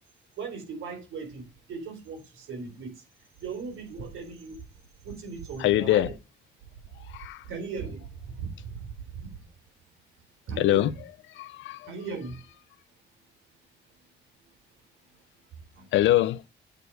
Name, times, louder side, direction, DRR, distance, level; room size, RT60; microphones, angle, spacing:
voice 1, 0.4-3.0 3.4-4.6 5.0-6.1 7.4-9.3 10.5-11.0 11.9-12.4 15.7-15.9, right 5 dB, 80° right, 3.5 m, -37 dB
voice 2, 5.6-6.1 7.1-7.4 10.6-10.9 11.3-11.9 15.9-16.4, left 14 dB, 70° left, 0.5 m, -23 dB
8.1 x 4.6 x 6.3 m
cardioid pair, 90°, 20 cm